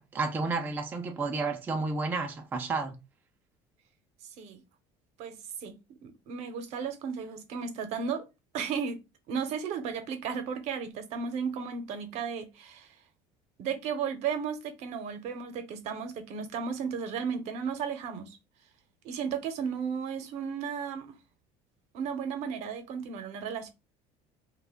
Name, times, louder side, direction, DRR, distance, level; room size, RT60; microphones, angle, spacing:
voice 1, 0.0-3.0, right 3 dB, 15° right, 0.3 m, -31 dB
voice 2, 5.2-8.3 8.5-9.0 9.3-12.9 13.6-18.4 19.0-21.1 21.9-23.7, right 6 dB, 60° right, 0.6 m, -34 dB
2.4 x 2.1 x 3.5 m
cardioid pair, 140°, 13 cm